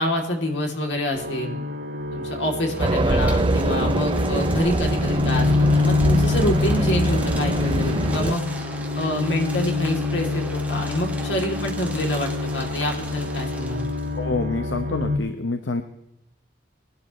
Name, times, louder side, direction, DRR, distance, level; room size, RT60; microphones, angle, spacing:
voice 1, 0.0-1.6 2.1-8.4 8.9-13.9, left 1 dB, 70° left, 2 dB, 2.9 m, -27 dB
sound 1, 1.1-15.2, left 3 dB, 80° right, 2.7 m, -26 dB
sound 2, 2.6-14.2, right 2 dB, 10° right, 1.6 m, -39 dB
Race car auto racing, 2.8-8.4, right 2 dB, 25° right, 0.4 m, -23 dB
voice 2, 14.1-15.8, left 3 dB, 85° left, 7 dB, 0.9 m, -27 dB
21.5 x 12.0 x 3.1 m, 0.87 s
head